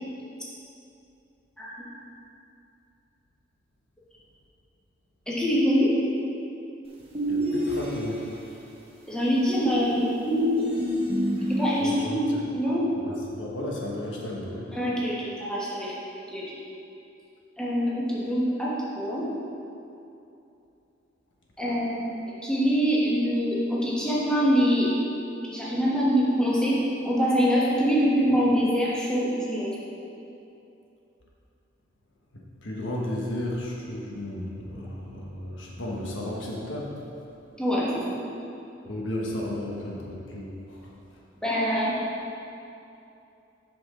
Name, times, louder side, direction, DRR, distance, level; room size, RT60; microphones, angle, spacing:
voice 1, 5.3-5.9 9.1-10.8 11.5-12.3 12.5-12.9 14.7-15.9 16.3-16.5 17.6-19.3 21.6-24.9 25.4-26.8 27.0-29.7 37.6-38.2 41.4-41.9, equal, 5° left, -7 dB, 1.3 m, -24 dB
sound 1, 7.1-8.4 9.7-11.9, equal, 30° right, 1.2 m, -27 dB
voice 2, 7.3-8.6 11.8-12.4 13.0-14.7 32.3-37.0 38.8-40.9, left 1 dB, 80° left, -3 dB, 1.2 m, -34 dB
8.1 x 6.0 x 3.8 m, 2.8 s
head